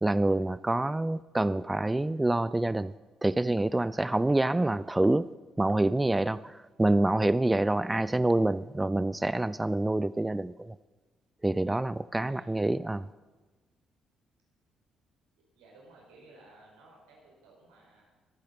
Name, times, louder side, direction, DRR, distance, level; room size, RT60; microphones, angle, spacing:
voice 1, 0.0-2.9 3.2-5.3 5.6-10.7 11.4-13.1, right 2 dB, 15° right, 17 dB, 0.4 m, -27 dB
voice 2, 15.5-18.0, right 2 dB, 85° right, -1 dB, 4.9 m, -56 dB
21.5 x 9.3 x 5.2 m, 1.3 s
hypercardioid pair, 55°, 0 cm